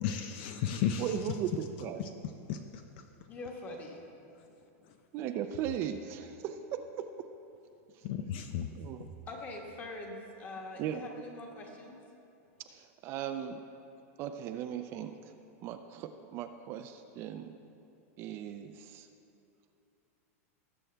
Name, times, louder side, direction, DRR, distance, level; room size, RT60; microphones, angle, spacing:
voice 1, 0.0-1.1 2.0-2.8 8.0-8.7 9.0-9.1, left 9 dB, 45° left, 7 dB, 0.5 m, -34 dB
voice 2, 1.0-2.0 5.1-6.6 8.0-8.1 8.7-9.1 10.8-11.1 12.7-13.6 14.2-15.1 15.6-17.5 18.2-19.1, right 9 dB, 30° right, 7 dB, 0.4 m, -37 dB
voice 3, 3.3-4.0 9.3-12.0, left 2 dB, 20° left, 1 dB, 1.4 m, -43 dB
19.5 x 7.6 x 3.4 m, 2.6 s
supercardioid pair, 160°, 8 cm